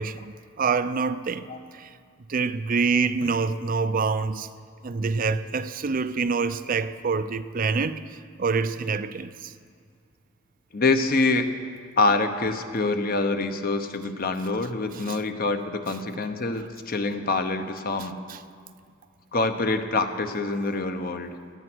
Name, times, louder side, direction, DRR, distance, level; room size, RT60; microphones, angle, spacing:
voice 1, 0.0-1.5 1.7-1.9 2.3-4.5 4.8-9.5 14.9-15.2 16.1-16.2 18.3-18.4, right 4 dB, 45° right, 0.5 m, -26 dB
voice 2, 10.7-11.5 12.0-18.2 19.3-21.3, left 3 dB, 50° left, 0.9 m, -25 dB
17.0 x 11.5 x 6.2 m
head